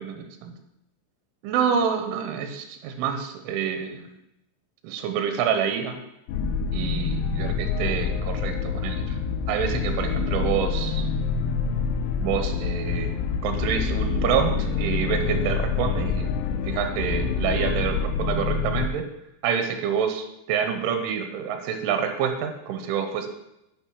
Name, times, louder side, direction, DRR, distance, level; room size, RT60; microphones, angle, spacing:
voice 1, 0.1-0.5 1.4-4.1 4.8-6.0 6.7-9.2 9.5-11.1 12.2-16.3 16.6-19.1 19.4-23.3, right 7 dB, 85° right, 6 dB, 3.5 m, -27 dB
sound 1, 6.3-18.9, left 5 dB, 90° left, 3.1 m, -26 dB
10.5 x 6.3 x 4.8 m, 0.85 s
omnidirectional pair, 5.5 m